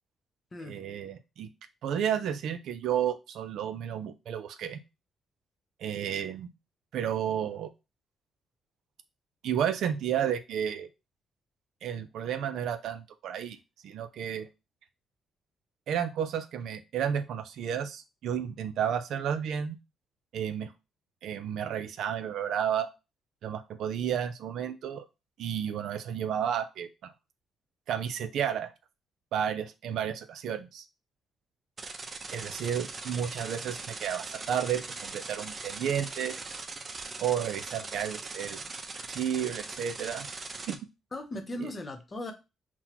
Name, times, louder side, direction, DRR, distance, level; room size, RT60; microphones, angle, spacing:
voice 1, 0.6-1.5 1.8-4.8 5.8-6.5 6.9-7.7 9.4-10.9 11.8-13.6 13.8-14.5 15.9-19.8 20.3-20.7 21.2-22.9 23.4-25.1 25.4-27.1 27.9-28.7 29.3-30.8 32.3-36.4 37.2-38.6 39.1-40.3 40.7-40.8 41.6-41.7, right 9 dB, 75° right, 10 dB, 0.5 m, -32 dB
sound 1, 31.8-40.7, right 3 dB, 35° right, 0.7 m, -40 dB
voice 2, 41.1-42.3, left 1 dB, 30° left, 6 dB, 0.9 m, -37 dB
5.7 x 2.2 x 2.9 m, 0.26 s
cardioid pair, 90°, 0 cm